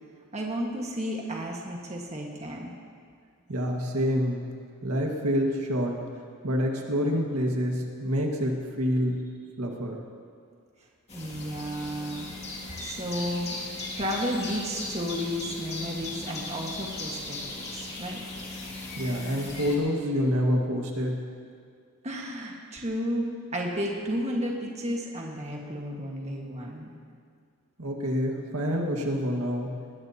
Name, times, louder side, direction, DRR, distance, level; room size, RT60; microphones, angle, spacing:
voice 1, 0.3-2.7 11.1-12.4 12.8-13.6 13.9-17.4 17.7-18.2 22.0-26.9, equal, 30° right, -1 dB, 1.6 m, -32 dB
voice 2, 3.5-4.4 4.8-6.0 6.4-9.2 9.6-10.0 19.0-21.2 27.8-29.8, equal, 85° right, 0 dB, 1.9 m, -27 dB
sound 1, 11.1-19.8, left 2 dB, 30° left, 2.3 m, -37 dB
20.5 x 18.0 x 2.9 m, 2.2 s
head